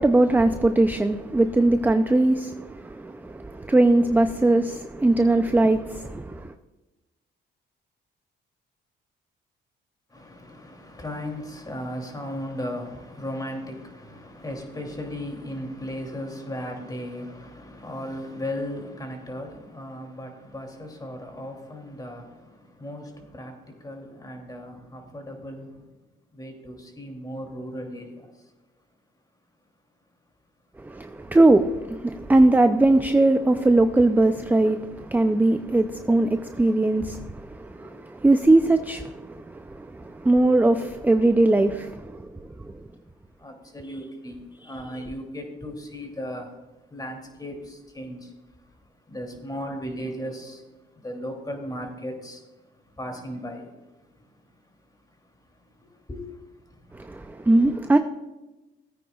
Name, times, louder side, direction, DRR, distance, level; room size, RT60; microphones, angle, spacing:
voice 1, 0.0-6.5 30.8-42.7 44.6-44.7 56.9-58.0, right 2 dB, 10° right, 0.4 m, -21 dB
voice 2, 10.1-22.2 22.8-23.0 23.4-23.5 23.8-25.7 26.4-28.0 43.4-44.4 44.7-46.5 46.9-47.5 47.9-48.2 49.1-50.6 51.0-52.4 53.0-53.6 56.1-56.2, equal, 20° left, 2.7 m, -36 dB
17.5 x 9.0 x 2.3 m
cardioid pair, 90°, 20 cm